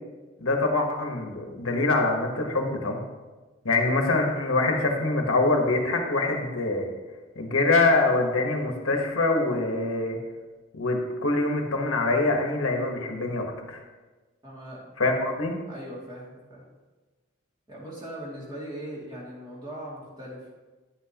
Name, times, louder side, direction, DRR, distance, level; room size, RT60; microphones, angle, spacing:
voice 1, 0.4-3.0 3.6-6.9 7.3-10.2 10.7-13.8 15.0-15.5, left 2 dB, 80° left, 2 dB, 1.3 m, -24 dB
voice 2, 14.4-14.9 15.6-16.6 17.7-20.5, right 1 dB, 20° right, -6 dB, 2.4 m, -40 dB
10.5 x 7.9 x 2.9 m, 1.3 s
head